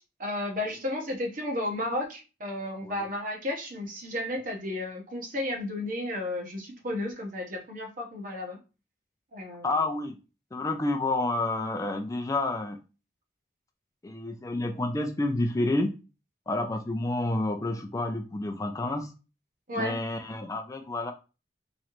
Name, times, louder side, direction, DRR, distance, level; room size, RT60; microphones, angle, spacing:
voice 1, 0.2-8.6 9.3-9.8 19.7-20.0, left 1 dB, 50° right, 2 dB, 1.0 m, -33 dB
voice 2, 9.6-10.2 10.5-12.8 14.0-15.9 16.5-19.1 19.8-21.1, left 2 dB, 20° left, 5 dB, 0.4 m, -29 dB
3.7 x 3.1 x 3.0 m, 0.31 s
head